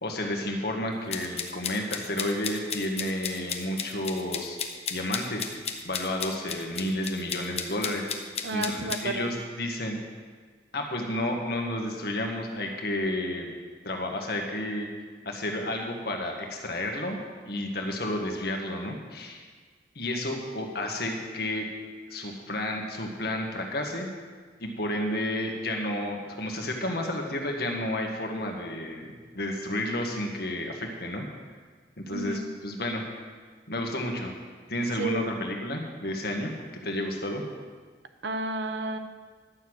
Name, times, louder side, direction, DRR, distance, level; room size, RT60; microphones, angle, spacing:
voice 1, 0.0-4.6 4.9-5.5 5.8-8.1 8.5-10.0 10.7-13.5 13.8-14.9 15.3-17.2 17.5-19.4 20.0-21.7 22.1-24.1 24.6-31.3 32.0-33.0 33.7-34.3 34.7-36.5 36.8-37.4, left 1 dB, 60° left, 2 dB, 1.8 m, -31 dB
sound 1, 1.1-9.0, left 7 dB, 35° left, 0.9 m, -34 dB
voice 2, 8.4-9.3 32.1-32.5 35.0-35.4 38.2-39.0, right 2 dB, 75° right, 8 dB, 1.0 m, -31 dB
11.5 x 7.0 x 8.1 m, 1.5 s
head